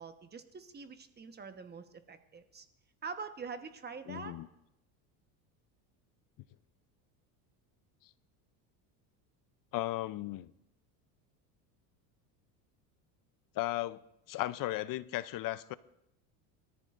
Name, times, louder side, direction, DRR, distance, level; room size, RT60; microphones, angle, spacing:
voice 1, 0.0-2.7 3.0-4.3, right 5 dB, 20° right, 1.2 m, -45 dB
voice 2, 4.1-4.5 9.7-10.5 13.6-14.0 14.3-15.7, left 16 dB, 45° left, 0.6 m, -35 dB
24.0 x 14.0 x 2.6 m
supercardioid pair, 105°, 46 cm